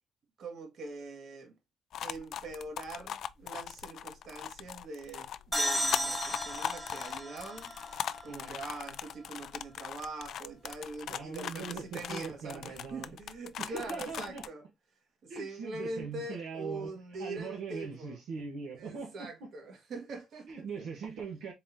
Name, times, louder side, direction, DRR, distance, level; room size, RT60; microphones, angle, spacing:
voice 1, 0.4-1.5 2.0-7.7 8.2-14.6 15.2-18.2 18.8-20.7, right 3 dB, 65° right, 1.5 m, -43 dB
sound 1, 1.9-14.5, left 9 dB, 70° left, 0.3 m, -40 dB
sound 2, 5.5-9.1, equal, 5° right, 1.1 m, -35 dB
voice 2, 8.2-8.6 11.1-13.2 13.6-14.5 15.3-16.9 17.2-19.5 20.5-21.5, right 5 dB, 85° right, 1.2 m, -41 dB
4.0 x 3.8 x 2.7 m
cardioid pair, 90°, 0 cm